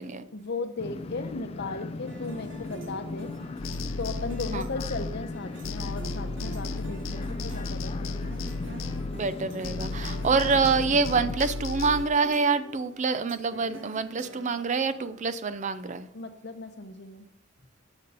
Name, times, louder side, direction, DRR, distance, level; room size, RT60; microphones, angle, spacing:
voice 1, 0.3-3.3 4.0-8.2 16.1-17.3, left 3 dB, 60° left, 9 dB, 0.8 m, -36 dB
sound 1, 0.8-11.4, left 3 dB, 30° left, 0.3 m, -38 dB
sound 2, 2.1-15.3, right 1 dB, 70° right, 1.4 m, -46 dB
sound 3, 3.6-5.4 5.6-9.4 9.6-12.0, left 3 dB, 90° left, 0.7 m, -35 dB
voice 2, 9.1-16.1, right 4 dB, 40° right, 13 dB, 0.5 m, -26 dB
7.9 x 6.7 x 5.4 m, 0.76 s
head